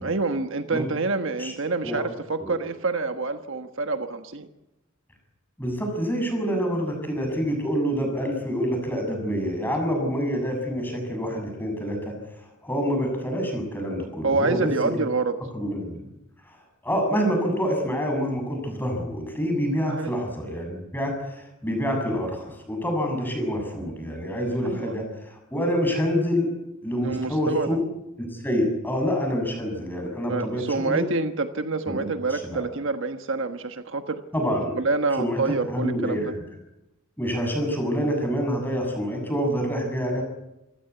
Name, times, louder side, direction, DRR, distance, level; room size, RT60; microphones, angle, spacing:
voice 1, 0.0-4.5 14.2-15.4 19.8-20.2 24.6-25.0 27.0-27.8 30.3-34.2 34.7-36.3, right 3 dB, 60° right, 8 dB, 1.3 m, -27 dB
voice 2, 5.6-15.0 15.5-16.0 16.5-16.6 16.8-26.5 26.8-27.8 28.2-31.0 31.9-32.0 32.3-32.7 34.3-34.8 35.2-36.3 37.2-40.2, equal, 10° left, 3 dB, 7.3 m, -27 dB
27.0 x 16.0 x 8.3 m, 0.92 s
head